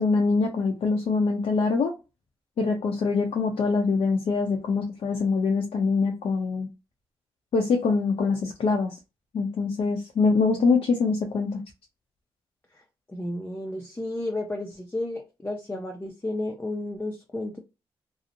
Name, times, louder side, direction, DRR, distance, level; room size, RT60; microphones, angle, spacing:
voice 1, 0.0-1.9 2.6-6.7 7.5-9.0 9.3-11.6, left 4 dB, 70° left, 0.6 m, -24 dB
voice 2, 13.1-17.6, left 1 dB, 20° left, 0.6 m, -32 dB
2.8 x 2.0 x 2.5 m
cardioid pair, 70°, 10 cm